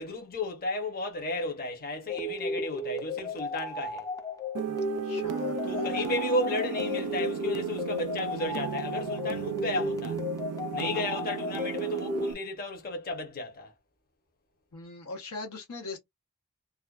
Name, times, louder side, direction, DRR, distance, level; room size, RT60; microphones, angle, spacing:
voice 1, 0.0-4.1 5.7-10.2 10.7-13.7, left 2 dB, 45° left, 0.8 m, -33 dB
sound 1, 2.1-12.3, left 2 dB, 15° left, 0.4 m, -34 dB
sound 2, 4.5-12.3, right 6 dB, 80° right, 0.3 m, -35 dB
voice 2, 5.0-6.1 10.8-11.1 14.7-16.0, left 2 dB, 80° left, 0.7 m, -39 dB
2.4 x 2.2 x 2.3 m
head